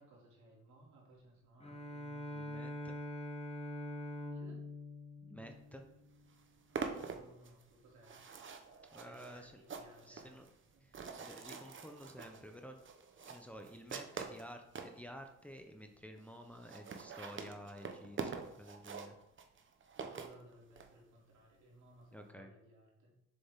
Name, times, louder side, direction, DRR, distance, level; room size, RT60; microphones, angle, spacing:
voice 1, 0.0-2.4 4.3-4.6 6.7-8.2 9.0-10.4 10.7-10.8 19.9-23.1, right 1 dB, 70° right, -2 dB, 3.0 m, -61 dB
Bowed string instrument, 1.6-6.2, left 1 dB, 20° left, 1.2 m, -44 dB
voice 2, 2.3-3.0 5.2-5.9 8.9-9.6 10.0-10.5 10.8-12.8 13.3-19.2 22.1-22.5, equal, 5° left, 4 dB, 0.9 m, -52 dB
sound 1, 5.8-5.9 6.1-15.0 15.6-15.7 15.9-16.0 16.2-16.3 16.5-20.9, right 5 dB, 40° right, 1.0 m, -45 dB
6.9 x 6.8 x 3.7 m, 0.80 s
cardioid pair, 90°, 30 cm